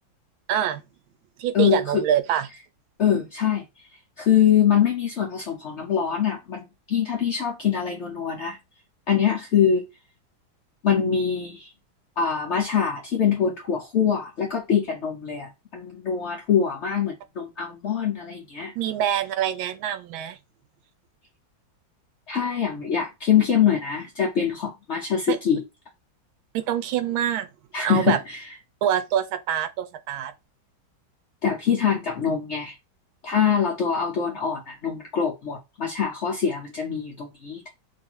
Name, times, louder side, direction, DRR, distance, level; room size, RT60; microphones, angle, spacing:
voice 1, 0.5-0.8 1.4-2.5 18.8-20.4 25.3-25.4 26.5-27.5 27.8-28.2 28.8-30.3, right 10 dB, 85° right, 1.4 m, -25 dB
voice 2, 1.5-2.0 3.0-3.6 4.2-8.6 9.1-9.8 10.8-11.7 12.2-18.7 22.3-25.6 27.7-28.4 31.4-32.8 33.2-37.7, left 8 dB, 70° left, 0.6 m, -24 dB
3.3 x 2.5 x 4.2 m
omnidirectional pair, 2.2 m